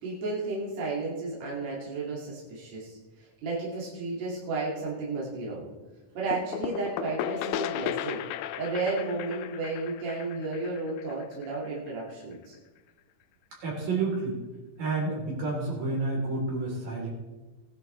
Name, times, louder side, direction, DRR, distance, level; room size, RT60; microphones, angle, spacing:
voice 1, 0.0-5.7 6.2-8.2 8.6-12.6, right 3 dB, 55° right, -6 dB, 3.5 m, -33 dB
sound 1, 6.3-11.9, left 11 dB, 80° left, 1.9 m, -35 dB
voice 2, 13.6-14.4 14.8-17.1, right 3 dB, 75° right, -3 dB, 5.4 m, -30 dB
19.5 x 11.0 x 3.3 m, 1.2 s
omnidirectional pair, 3.8 m